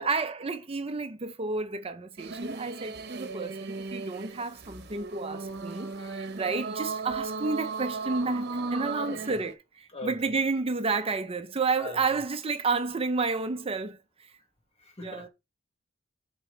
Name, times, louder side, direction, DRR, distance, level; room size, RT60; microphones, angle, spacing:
voice 1, 0.0-14.3 15.0-15.3, right 4 dB, 30° right, 0.7 m, -31 dB
sound 1, 2.2-9.5, right 3 dB, 55° right, 1.0 m, -36 dB
voice 2, 9.0-9.4 9.9-10.3 11.8-12.0 14.8-15.3, left 2 dB, 35° left, 1.7 m, -41 dB
7.3 x 5.2 x 3.3 m
head